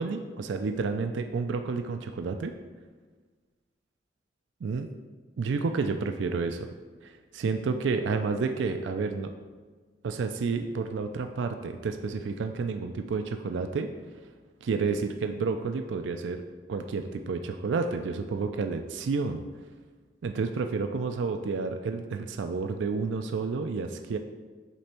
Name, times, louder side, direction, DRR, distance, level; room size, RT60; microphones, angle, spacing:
voice 1, 0.0-2.5 4.6-4.9 5.4-6.7 7.0-9.3 10.0-13.9 14.6-16.4 16.7-19.4 20.2-24.2, right 4 dB, 75° right, 6 dB, 0.4 m, -30 dB
8.2 x 3.4 x 4.3 m, 1.4 s
head